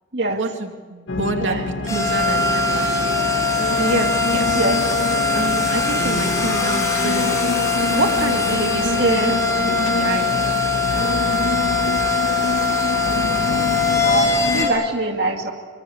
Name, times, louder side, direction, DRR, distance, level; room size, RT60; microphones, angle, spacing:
voice 1, 0.3-2.9 3.8-4.6 5.3-7.4 7.9-10.5, right 2 dB, 80° right, 4 dB, 2.6 m, -27 dB
sound 1, 1.1-14.7, left 2 dB, 80° left, 1.8 m, -26 dB
sound 2, 1.9-14.7, left 4 dB, 15° left, 7.4 m, -21 dB
voice 2, 4.5-5.0 9.0-9.3 14.0-15.5, right 2 dB, 60° right, 2 dB, 2.3 m, -23 dB
26.5 x 25.0 x 8.4 m, 1.4 s
head